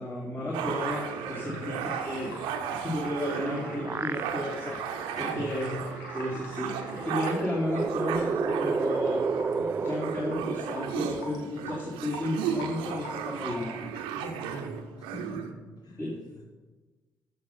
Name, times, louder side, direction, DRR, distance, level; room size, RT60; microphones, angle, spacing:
voice 1, 0.0-2.4 2.7-4.8 5.2-5.8 6.1-9.3 9.8-13.9 16.0-16.2, left 1 dB, 25° left, -4 dB, 2.4 m, -33 dB
sound 1, 0.5-15.5, right 8 dB, 70° right, 0.8 m, -35 dB
sound 2, 0.8-14.4, left 2 dB, 80° left, 1.3 m, -45 dB
sound 3, 3.4-4.8 5.3-5.4 6.7-11.5, right 4 dB, 25° right, 0.3 m, -32 dB
voice 2, 5.2-5.5 14.1-16.5, equal, 50° left, -1 dB, 2.7 m, -43 dB
14.0 x 5.2 x 5.5 m, 1.3 s
figure-of-eight pair, 40°, 9 cm